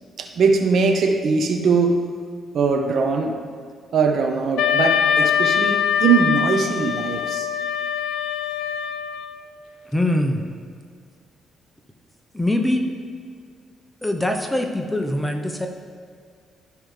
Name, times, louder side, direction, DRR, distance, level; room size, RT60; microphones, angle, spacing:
voice 1, 0.2-2.0 2.5-3.4 3.9-7.5, right 5 dB, 65° right, 4 dB, 0.8 m, -20 dB
Wind instrument woodwind instrument, 4.6-9.5, left 8 dB, 85° left, 0.4 m, -22 dB
voice 2, 9.9-10.5 12.3-12.9 14.0-15.7, left 1 dB, 5° left, 3 dB, 0.8 m, -22 dB
12.5 x 5.0 x 3.3 m, 2.1 s
cardioid pair, 90°, 0 cm